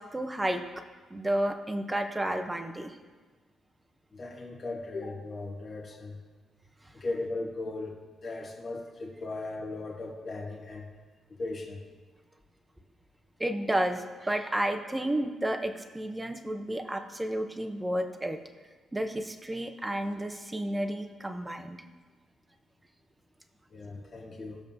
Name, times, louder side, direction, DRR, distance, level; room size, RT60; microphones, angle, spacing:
voice 1, 0.1-0.6 1.1-3.0 13.4-18.4 18.9-21.8, right 1 dB, 10° right, 6 dB, 0.7 m, -31 dB
voice 2, 4.1-6.2 6.9-8.0 8.2-10.9 11.3-11.8 23.7-24.6, left 2 dB, 35° left, -1 dB, 1.2 m, -37 dB
19.0 x 7.1 x 2.7 m, 1.4 s
cardioid pair, 165°, 0 cm